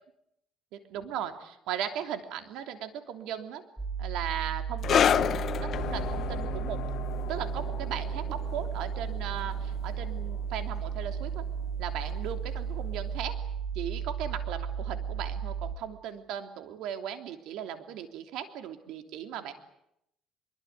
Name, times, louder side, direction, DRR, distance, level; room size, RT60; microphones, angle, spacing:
voice 1, 0.7-3.6 4.0-5.3 5.6-6.8 7.3-11.4 11.8-13.3 13.7-19.5, right 9 dB, 80° right, 7 dB, 3.2 m, -37 dB
sound 1, 3.8-15.8, right 7 dB, ahead, 3.3 m, -34 dB
sound 2, 4.8-11.8 12.1-12.3 13.1-13.2, left 9 dB, 50° left, 0.9 m, -31 dB
sound 3, 5.7-10.0 10.3-10.4 11.0-11.1, left 10 dB, 75° left, 1.8 m, -42 dB
24.5 x 23.0 x 9.5 m, 0.80 s
cardioid pair, 125°, 0 cm